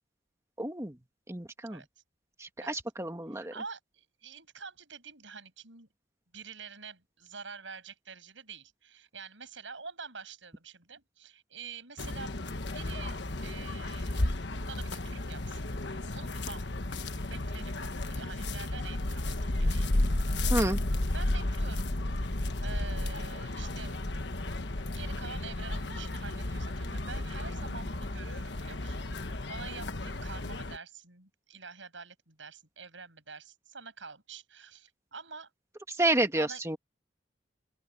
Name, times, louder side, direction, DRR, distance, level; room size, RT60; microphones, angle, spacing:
voice 1, 0.6-0.9 1.3-1.8 2.4-3.5 20.5-20.8 35.9-36.8, right 2 dB, 15° right, 1.7 m, -30 dB
voice 2, 3.3-5.9 6.3-12.4 12.7-14.4 14.6-15.7 16.1-16.7 17.3-17.8 18.1-20.6 21.1-21.9 22.6-24.0 24.9-29.0 29.5-35.5 36.3-36.6, right 5 dB, 85° right, 6.3 m, -47 dB
sound 1, 12.0-30.8, left 1 dB, 65° left, 1.3 m, -33 dB
open air
head